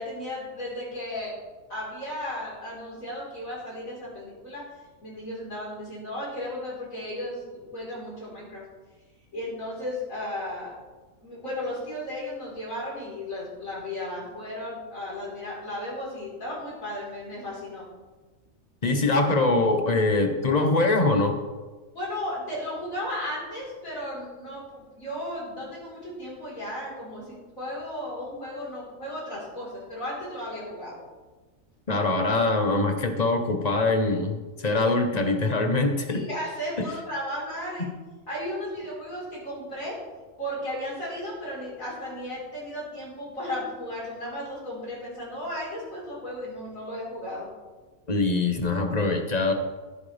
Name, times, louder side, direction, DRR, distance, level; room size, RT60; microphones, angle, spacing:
voice 1, 0.0-1.3 1.7-4.6 5.0-8.6 9.3-10.7 11.2-17.8 21.9-31.1 36.1-37.9 38.3-39.9 40.4-47.5, left 1 dB, 75° left, -6 dB, 4.9 m, -35 dB
voice 2, 18.8-21.4 31.9-36.2 36.8-36.9 48.1-49.5, left 2 dB, 30° left, 5 dB, 1.2 m, -23 dB
14.0 x 10.0 x 3.5 m, 1.3 s
omnidirectional pair, 1.4 m